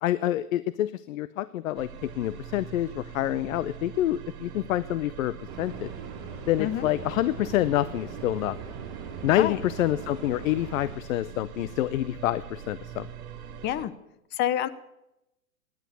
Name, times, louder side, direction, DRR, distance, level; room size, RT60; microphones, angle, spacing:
voice 1, 0.0-5.9 6.5-8.6 9.2-13.1, left 13 dB, 60° left, 17 dB, 0.8 m, -27 dB
sound 1, 1.7-13.9, right 9 dB, 65° right, 2.5 m, -43 dB
sound 2, 5.5-11.0, right 5 dB, 25° right, 7.6 m, -41 dB
voice 2, 6.6-6.9 9.4-9.6 13.6-13.9 14.3-14.7, left 12 dB, 25° left, 15 dB, 0.9 m, -27 dB
17.5 x 11.0 x 6.8 m, 0.88 s
hypercardioid pair, 130°, 45 cm